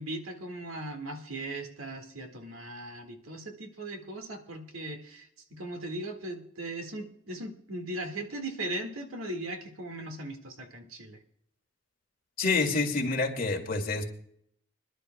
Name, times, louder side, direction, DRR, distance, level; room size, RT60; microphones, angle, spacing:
voice 1, 0.0-11.2, right 1 dB, 85° right, 4 dB, 1.8 m, -38 dB
voice 2, 12.4-14.0, left 3 dB, 45° left, 1 dB, 2.2 m, -27 dB
26.0 x 11.5 x 2.2 m, 0.71 s
head